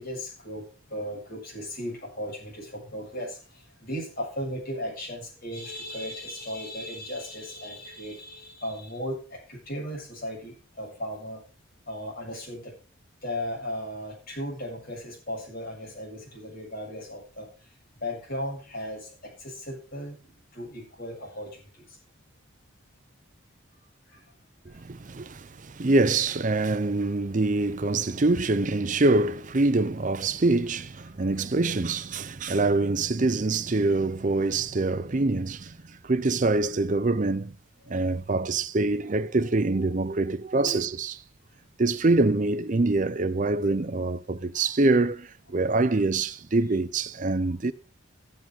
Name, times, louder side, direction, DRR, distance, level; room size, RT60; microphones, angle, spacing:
voice 1, 0.0-11.4 11.9-12.7 13.2-17.7 18.0-22.0 24.1-24.2 24.7-24.8 31.2-31.3 37.8-37.9 40.7-40.8 44.5-44.7 47.4-47.5, equal, 45° left, 7.7 m, -36 dB
voice 2, 24.7-37.5 37.9-41.2 41.8-47.7, right 2 dB, 40° right, 0.6 m, -25 dB
14.0 x 9.0 x 5.8 m
head